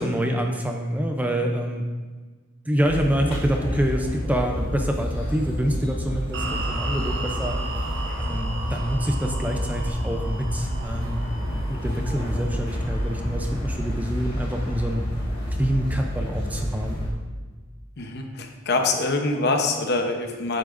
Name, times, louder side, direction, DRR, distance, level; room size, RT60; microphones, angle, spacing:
voice 1, 0.0-1.8 2.7-7.6 8.2-11.2 11.5-15.0 15.5-17.0, equal, 10° right, 3 dB, 0.5 m, -26 dB
sound 1, 2.8-17.1, equal, 30° left, 2.1 m, -29 dB
sound 2, 6.3-13.5, right 3 dB, 65° right, 1.1 m, -36 dB
voice 2, 18.0-20.6, left 3 dB, 55° left, 3 dB, 0.9 m, -24 dB
8.3 x 8.2 x 2.6 m, 1.4 s
head